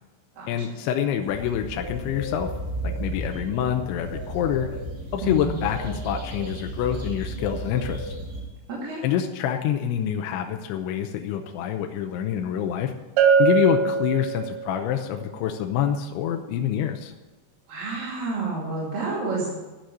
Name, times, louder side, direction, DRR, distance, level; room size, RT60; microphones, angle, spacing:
voice 1, 0.5-2.5 2.8-4.7 5.1-8.2 9.0-12.9 13.4-17.1, left 9 dB, 80° left, 4 dB, 2.8 m, -26 dB
sound 1, 1.2-8.4, right 1 dB, 25° right, 2.5 m, -33 dB
voice 2, 5.2-5.6 8.7-9.0 17.7-19.6, right 3 dB, 50° right, -7 dB, 3.9 m, -29 dB
Bell, 13.2-14.8, right 5 dB, 80° right, 4.2 m, -21 dB
13.0 x 6.5 x 8.8 m, 1.1 s
omnidirectional pair, 5.9 m